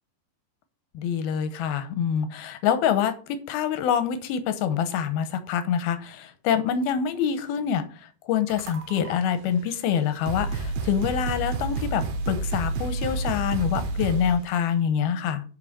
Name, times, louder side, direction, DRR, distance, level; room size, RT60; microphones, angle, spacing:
voice 1, 0.9-15.4, left 8 dB, 75° left, 10 dB, 2.5 m, -26 dB
sound 1, 8.5-9.1 9.9-10.0 10.3-14.5, right 3 dB, 70° right, 3.0 m, -29 dB
8.5 x 5.5 x 6.7 m, 0.40 s
omnidirectional pair, 4.9 m